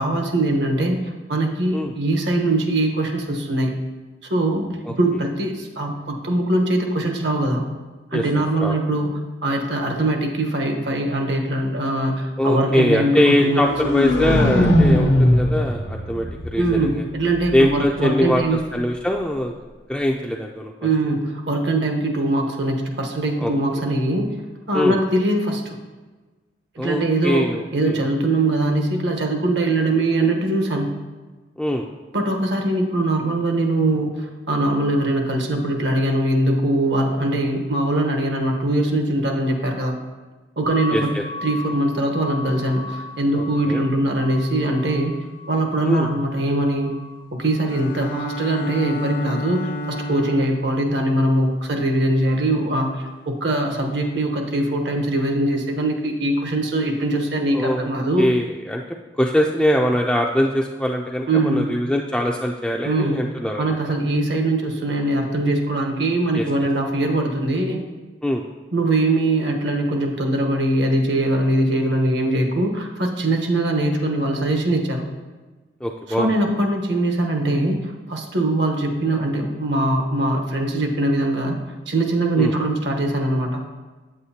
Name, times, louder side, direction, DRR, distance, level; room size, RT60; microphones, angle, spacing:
voice 1, 0.0-3.7 4.2-7.7 8.1-13.7 16.6-18.6 20.8-24.3 24.7-25.8 26.7-30.9 32.1-40.0 40.6-41.1 41.4-45.1 45.5-46.9 47.3-58.3 61.3-61.8 62.8-63.3 63.6-67.8 68.7-75.1 76.1-81.6 81.9-83.6, right 1 dB, 75° right, 3 dB, 1.1 m, -22 dB
voice 2, 8.1-8.8 12.4-17.0 17.5-19.6 19.9-20.7 23.4-23.5 24.7-25.0 26.8-28.0 31.6-31.9 40.9-41.2 43.3-43.8 45.8-46.1 57.5-57.8 58.2-63.8 66.3-66.4 68.2-68.4 75.8-76.3 82.4-82.5, left 1 dB, 5° left, -1 dB, 0.3 m, -22 dB
sound 1, 13.4-17.4, left 1 dB, 80° left, 0.8 m, -19 dB
sound 2, 40.6-52.4, left 1 dB, 50° right, 0.8 m, -39 dB
Bowed string instrument, 47.7-50.7, equal, 60° left, 0.6 m, -30 dB
8.8 x 7.9 x 2.8 m, 1.3 s
head